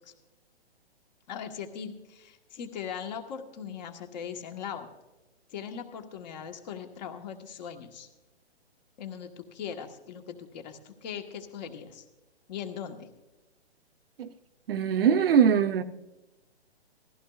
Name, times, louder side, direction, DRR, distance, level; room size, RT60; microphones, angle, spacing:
voice 1, 1.3-4.9 5.5-8.1 9.0-12.0 12.5-13.1, left 8 dB, 40° left, 1.4 m, -39 dB
voice 2, 14.7-15.8, right 7 dB, 60° right, 0.8 m, -22 dB
18.5 x 15.0 x 2.4 m
hypercardioid pair, 150°, 33 cm